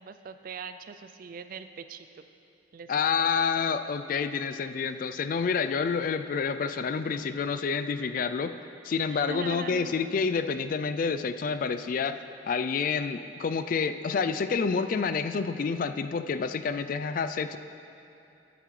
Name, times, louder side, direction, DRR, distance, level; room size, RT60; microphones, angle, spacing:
voice 1, 0.0-2.2 2.7-3.6 9.1-10.0, right 5 dB, 50° right, 10 dB, 0.4 m, -41 dB
voice 2, 2.9-8.6 8.8-12.2 12.5-17.6, left 5 dB, 45° left, 10 dB, 0.3 m, -28 dB
13.5 x 9.1 x 3.2 m, 2.8 s
head